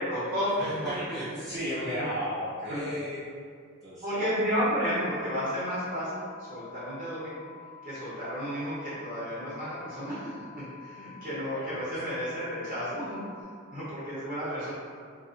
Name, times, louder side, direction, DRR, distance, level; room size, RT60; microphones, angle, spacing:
voice 1, 0.0-1.2 1.9-2.1 2.7-2.9 4.0-7.5 7.8-13.2 13.7-14.7, equal, 40° right, -12 dB, 0.8 m, -32 dB
voice 2, 0.6-3.2 3.8-4.4 11.5-12.0, equal, ahead, -15 dB, 1.2 m, -35 dB
sound 1, 5.2-13.4, left 6 dB, 65° left, 0.4 m, -49 dB
2.4 x 2.3 x 2.4 m, 2.1 s
head